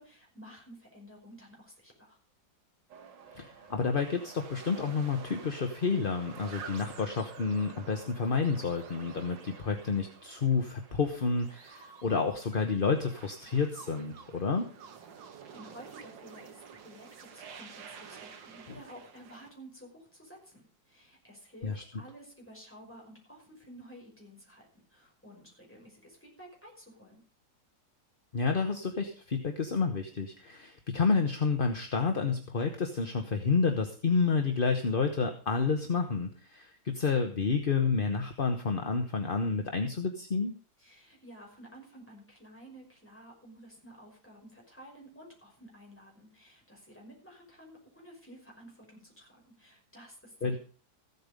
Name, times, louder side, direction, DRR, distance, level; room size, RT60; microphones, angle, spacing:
voice 1, 0.0-2.2 15.1-27.2 40.8-50.6, equal, 5° left, -1 dB, 5.4 m, -52 dB
sound 1, 2.9-19.5, right 6 dB, 75° right, 1.9 m, -50 dB
voice 2, 3.3-14.7 21.6-21.8 28.3-40.5 50.4-50.6, left 5 dB, 35° left, 5 dB, 1.0 m, -30 dB
15.0 x 8.3 x 5.2 m, 0.41 s
omnidirectional pair, 2.1 m